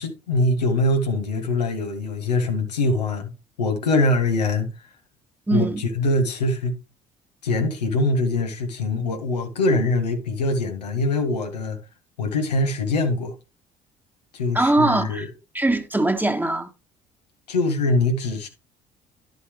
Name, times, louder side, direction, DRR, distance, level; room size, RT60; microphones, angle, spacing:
voice 1, 0.0-3.3 3.6-4.7 5.5-6.8 7.4-11.8 12.2-13.3 14.3-15.3 17.5-18.5, left 2 dB, 90° left, 1.5 m, -23 dB
voice 2, 5.5-5.8 14.5-15.2 15.5-16.7, right 2 dB, 10° right, 1.5 m, -21 dB
11.0 x 6.7 x 3.2 m
hypercardioid pair, 55°, 21 cm